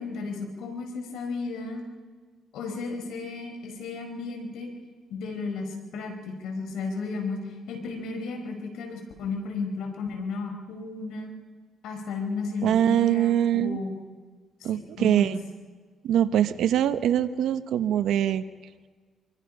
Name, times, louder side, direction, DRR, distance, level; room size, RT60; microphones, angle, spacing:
voice 1, 0.0-1.8 2.5-4.7 5.1-7.4 7.7-11.3 11.8-14.0 14.7-15.3, left 4 dB, 85° left, 3 dB, 4.6 m, -34 dB
voice 2, 12.6-13.8 14.6-15.4 16.0-18.4, right 10 dB, 80° right, 11 dB, 1.0 m, -23 dB
26.0 x 23.5 x 5.5 m, 1.5 s
cardioid pair, 90°, 0 cm